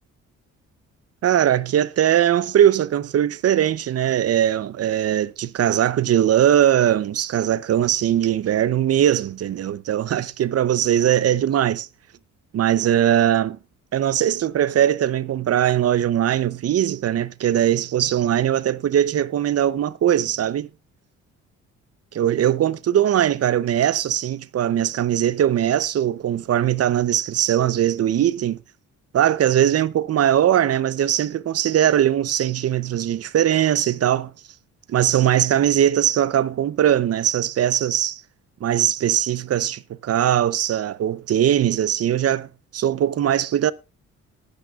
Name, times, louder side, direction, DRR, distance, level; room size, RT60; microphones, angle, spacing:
voice 1, 1.2-11.9 12.5-13.6 13.9-20.7 22.1-28.6 29.1-34.3 34.9-38.2 38.6-42.5 42.7-43.7, right 11 dB, 55° right, 0.7 m, -20 dB
20.0 x 9.2 x 2.4 m
cardioid pair, 90°, 30 cm